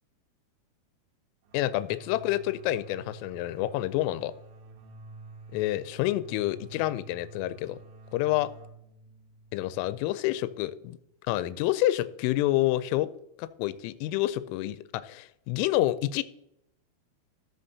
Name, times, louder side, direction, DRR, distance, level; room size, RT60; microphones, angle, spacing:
voice 1, 1.5-4.3 5.5-7.8 8.1-8.5 9.5-11.0 11.3-13.1 13.4-16.2, left 15 dB, 85° left, 14 dB, 3.0 m, -28 dB
sound 1, 1.5-10.9, right 2 dB, 75° right, 3.3 m, -50 dB
14.0 x 6.8 x 2.7 m, 0.79 s
omnidirectional pair, 6.0 m